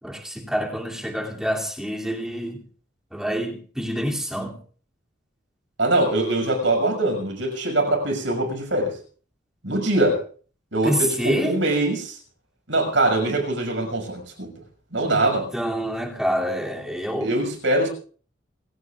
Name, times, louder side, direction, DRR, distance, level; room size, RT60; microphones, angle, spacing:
voice 1, 0.0-2.6 3.1-4.6 10.8-11.5 15.0-15.2 15.5-17.3, equal, 5° right, 2.7 m, -27 dB
voice 2, 5.8-8.9 9.6-10.2 10.7-12.2 12.7-14.5 14.9-15.5 17.2-17.9, right 2 dB, 65° right, 6.4 m, -22 dB
27.5 x 16.0 x 2.5 m
head